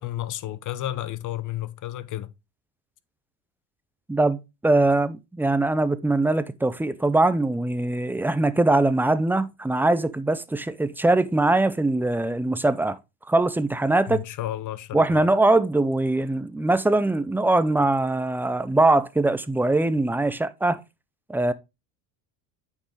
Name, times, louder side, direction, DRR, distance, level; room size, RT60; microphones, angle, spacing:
voice 1, 0.0-2.3 14.1-15.3, left 13 dB, 45° left, 0.8 m, -32 dB
voice 2, 4.1-13.0 13.3-14.2 14.9-20.8 21.3-21.5, right 2 dB, 5° right, 0.5 m, -22 dB
8.4 x 5.4 x 3.1 m
hypercardioid pair, 80°, 44 cm